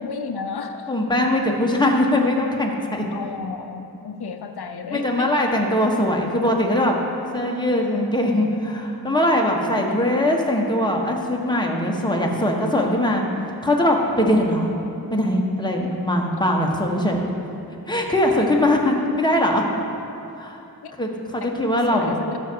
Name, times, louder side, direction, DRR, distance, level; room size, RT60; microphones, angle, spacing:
voice 1, 0.0-0.9 3.1-5.3 20.8-20.9 21.4-21.5 21.9-22.4, left 5 dB, 80° left, 7 dB, 0.7 m, -32 dB
voice 2, 0.9-3.0 4.9-7.0 7.3-13.2 13.6-14.7 15.1-17.2 17.9-19.6 20.4-20.6 21.0-22.1, left 1 dB, 10° left, 0 dB, 1.4 m, -21 dB
13.0 x 6.3 x 4.7 m, 2.8 s
cardioid pair, 40°, 38 cm